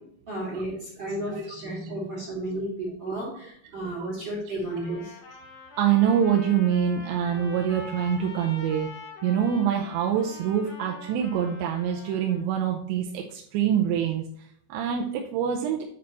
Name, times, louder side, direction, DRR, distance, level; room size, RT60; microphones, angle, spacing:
voice 1, 0.3-5.2, right 1 dB, 30° right, -5 dB, 2.6 m, -33 dB
Trumpet, 4.7-12.4, left 3 dB, 65° left, 3.1 m, -44 dB
voice 2, 5.8-8.9 9.2-15.8, right 8 dB, 85° right, 0 dB, 2.9 m, -25 dB
8.8 x 4.4 x 4.2 m, 0.67 s
omnidirectional pair, 5.2 m